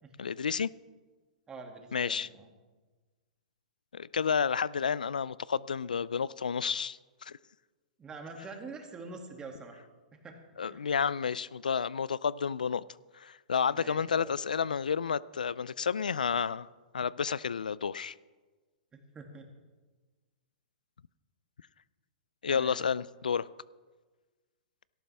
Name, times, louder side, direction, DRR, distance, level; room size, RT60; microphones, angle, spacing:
voice 1, 0.2-0.7 1.9-2.3 3.9-7.4 10.6-12.8 13.1-16.7 16.9-18.1 22.4-23.5, left 6 dB, 90° left, 0.3 m, -31 dB
voice 2, 1.5-2.5 8.0-9.8 10.1-10.9 13.7-14.4 18.9-19.5 22.5-22.8, right 3 dB, 20° right, 2.2 m, -46 dB
17.5 x 13.5 x 3.4 m
hypercardioid pair, 120°, 4 cm